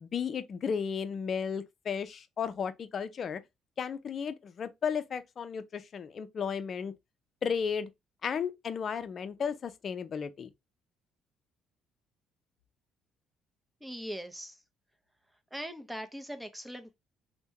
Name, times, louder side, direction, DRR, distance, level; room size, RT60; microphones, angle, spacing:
voice 1, 0.0-3.4 3.8-6.9 7.4-7.9 8.2-10.5, left 6 dB, 50° left, 0.4 m, -34 dB
voice 2, 13.8-14.6 15.5-17.0, equal, 5° right, 0.7 m, -40 dB
3.4 x 2.1 x 2.7 m
supercardioid pair, 65°, 0 cm